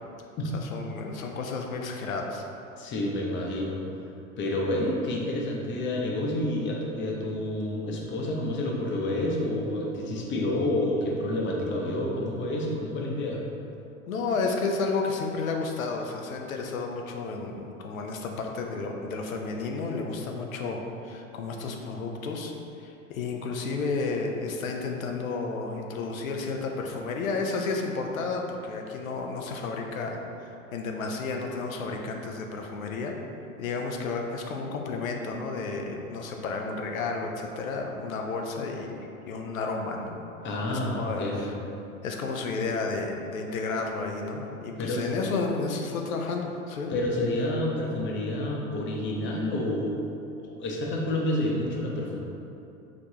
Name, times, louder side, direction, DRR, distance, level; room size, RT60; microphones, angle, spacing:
voice 1, 0.7-2.4 14.1-22.5 22.8-33.1 33.6-38.9 39.3-40.2 40.7-41.5 42.0-46.9, left 4 dB, 75° left, 2 dB, 0.7 m, -32 dB
voice 2, 2.8-3.8 4.4-13.4 40.4-41.5 44.8-45.1 46.9-50.0 50.4-52.2, left 1 dB, 30° left, -1 dB, 0.8 m, -29 dB
4.9 x 3.5 x 2.8 m, 2.8 s
figure-of-eight pair, 90°, 41 cm